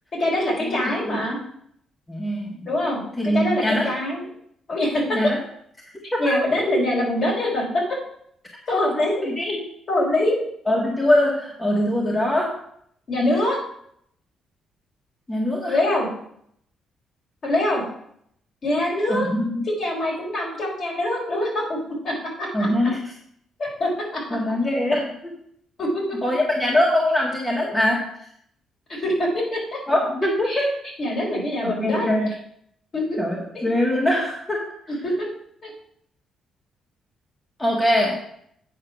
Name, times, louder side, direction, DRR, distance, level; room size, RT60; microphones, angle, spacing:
voice 1, 0.2-1.4 2.6-4.3 4.7-5.2 6.2-8.0 8.7-9.1 9.9-10.4 13.1-13.6 15.7-16.1 17.4-17.8 18.6-19.3 19.7-22.7 23.6-24.2 25.8-26.0 28.9-29.8 30.5-30.6 31.0-32.1 32.9-33.2 33.5-33.6 35.0-35.3 35.6-35.7, left 1 dB, 50° left, -2 dB, 4.2 m, -24 dB
voice 2, 2.1-2.7 3.2-3.9 5.1-5.4 6.1-6.4 9.2-9.6 10.7-12.6 15.3-15.8 19.1-19.6 22.5-23.0 24.3-25.3 26.2-28.1 29.9-30.7 31.6-32.3 33.2-34.7 37.6-38.2, left 1 dB, 15° left, -2 dB, 1.7 m, -22 dB
8.8 x 4.8 x 6.0 m, 0.69 s
cardioid pair, 90°, 0 cm